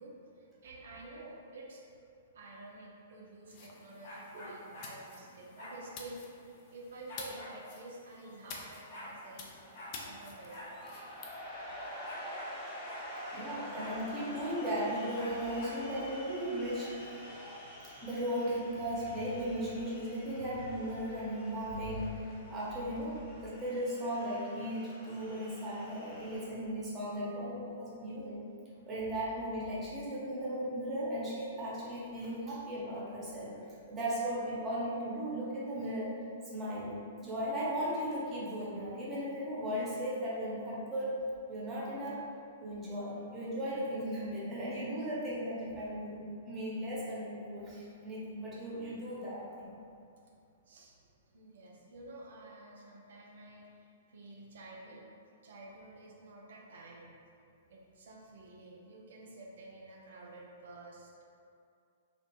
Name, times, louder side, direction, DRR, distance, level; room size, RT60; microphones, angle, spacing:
voice 1, 0.0-1.8 2.3-11.0 50.7-51.0 51.3-55.1 55.4-57.1 57.7-61.2, right 2 dB, 60° right, -2 dB, 0.4 m, -50 dB
sound 1, 3.5-11.3, left 4 dB, 40° left, 0.4 m, -51 dB
sound 2, 4.0-4.9 5.6-5.8 7.1-7.6 8.4-8.5 8.7-9.1 9.7-9.9 10.5-10.7 11.0-11.1 12.0-12.5 12.8-13.1 13.7-14.0 15.1-15.8, left 1 dB, 55° left, 1.0 m, -47 dB
sound 3, 8.9-26.4, equal, 10° left, 0.8 m, -48 dB
voice 2, 13.3-17.0 18.0-22.1 22.5-28.4 28.9-36.2 36.4-36.9 37.2-41.1 41.5-42.2 42.6-49.7, equal, 20° right, -7 dB, 0.8 m, -36 dB
2.4 x 2.1 x 2.9 m, 2.4 s
figure-of-eight pair, 110°, 0 cm